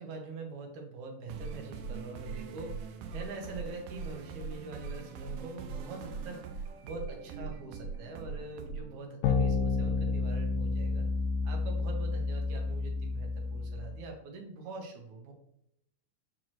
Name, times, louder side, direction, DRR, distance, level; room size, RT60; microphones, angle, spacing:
voice 1, 0.0-11.1 11.5-15.3, right 3 dB, 65° right, 2 dB, 2.1 m, -44 dB
sound 1, 1.3-9.0, right 5 dB, 85° right, 2.4 m, -41 dB
sound 2, 9.2-14.0, left 4 dB, 75° left, 2.2 m, -30 dB
7.4 x 4.7 x 3.0 m, 0.77 s
omnidirectional pair, 4.2 m